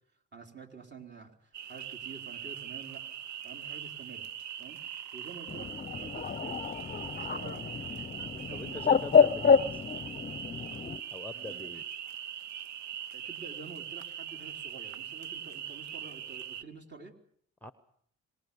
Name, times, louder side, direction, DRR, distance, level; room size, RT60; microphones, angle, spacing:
voice 1, 0.3-3.1 3.4-4.3 4.6-4.8 5.1-6.6 7.0-7.7 8.3-8.8 9.1-9.2 11.3-11.7 13.1-17.2, right 4 dB, 35° right, 1 dB, 4.1 m, -49 dB
sound 1, 1.5-16.6, right 9 dB, 70° right, 1.0 m, -41 dB
Bird, 5.5-11.0, left 6 dB, 30° left, 0.8 m, -28 dB
voice 2, 8.5-9.8 11.1-11.8 17.6-17.7, left 3 dB, 5° left, 12 dB, 1.0 m, -43 dB
25.5 x 19.5 x 7.1 m, 0.63 s
cardioid pair, 90°, 30 cm